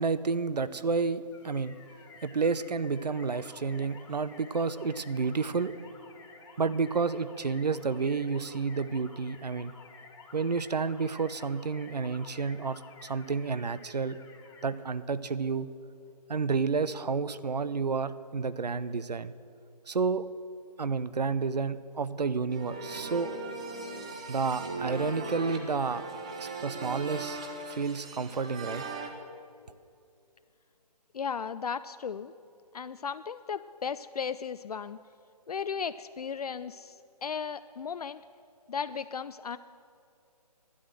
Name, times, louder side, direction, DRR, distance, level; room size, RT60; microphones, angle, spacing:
voice 1, 0.0-1.8 2.2-5.7 6.6-9.7 10.3-14.2 14.6-15.7 16.3-19.3 19.9-20.2 20.8-23.3 24.3-26.1 26.4-27.4 27.7-28.9, right 5 dB, 80° right, 15 dB, 0.6 m, -30 dB
sound 1, 1.3-14.7, left 4 dB, 40° left, 1.7 m, -53 dB
sound 2, 22.5-29.1, right 3 dB, 10° right, 0.3 m, -39 dB
voice 2, 31.1-32.3 32.7-35.0 35.5-38.2 38.7-39.6, left 6 dB, 65° left, 13 dB, 0.4 m, -35 dB
12.0 x 9.9 x 7.6 m, 2.6 s
figure-of-eight pair, 145°, 21 cm